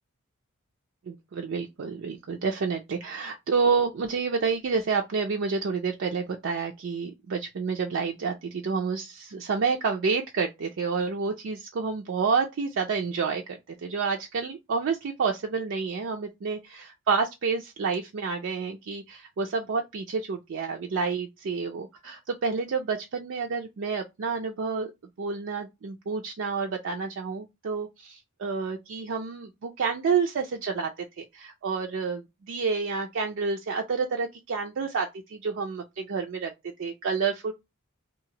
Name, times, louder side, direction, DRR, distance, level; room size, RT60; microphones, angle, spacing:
voice 1, 1.1-24.9 25.2-36.5 36.8-37.5, right 5 dB, 60° right, 0.4 m, -29 dB
2.8 x 2.4 x 2.7 m
head